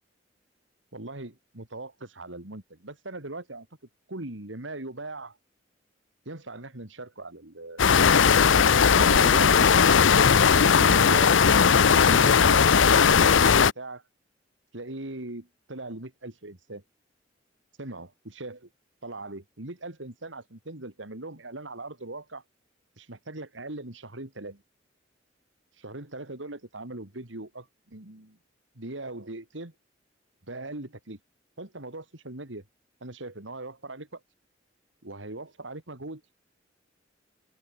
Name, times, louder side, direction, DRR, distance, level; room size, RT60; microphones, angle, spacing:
voice 1, 0.9-3.7 4.1-5.4 6.2-8.4 8.9-11.3 11.7-14.0 14.7-16.8 17.8-18.7 19.0-22.4 23.0-24.6 25.8-28.4 28.7-29.7 30.5-31.2 31.6-32.6 33.0-34.2 35.0-36.2, right 2 dB, 85° right, 2.9 m, -39 dB
sound 1, 7.8-13.7, left 6 dB, 90° left, 0.7 m, -18 dB
open air
head